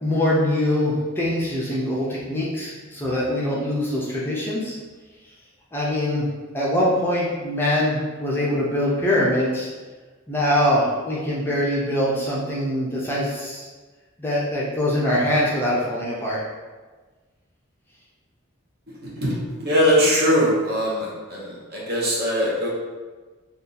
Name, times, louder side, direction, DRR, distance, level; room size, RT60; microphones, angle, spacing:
voice 1, 0.0-4.7 5.7-6.3 6.5-9.7 10.3-13.7 14.2-16.4, left 1 dB, 10° left, -6 dB, 0.5 m, -23 dB
voice 2, 19.6-22.7, equal, 50° right, -5 dB, 0.8 m, -21 dB
2.6 x 2.4 x 3.8 m, 1.3 s
head